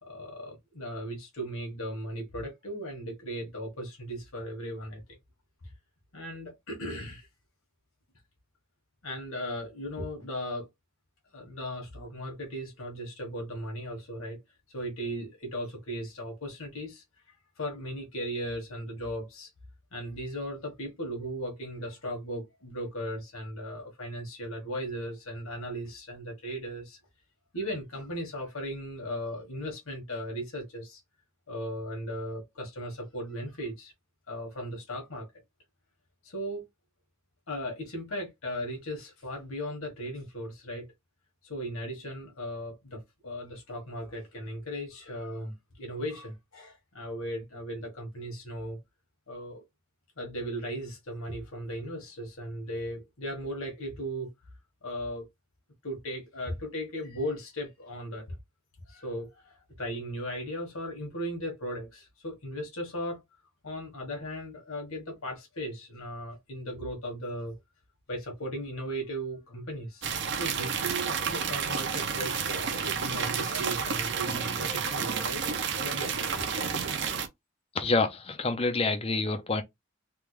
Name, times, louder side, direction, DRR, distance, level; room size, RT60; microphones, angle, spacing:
voice 1, 0.0-5.2 5.6-5.7 6.1-7.3 9.0-10.7 11.3-14.4 14.7-19.5 19.9-27.0 27.5-31.0 31.5-33.9 34.3-35.3 36.2-36.6 37.5-40.9 41.4-48.8 49.3-49.6 50.2-54.3 54.8-55.3 55.8-58.4 58.9-63.2 63.6-67.5 68.1-70.1 70.4-75.4 75.8-76.7, equal, 80° left, 1.3 m, -37 dB
sound 1, 70.0-77.3, right 6 dB, 55° right, 0.5 m, -31 dB
voice 2, 77.7-79.6, left 3 dB, 25° left, 0.5 m, -27 dB
3.5 x 2.3 x 3.1 m
head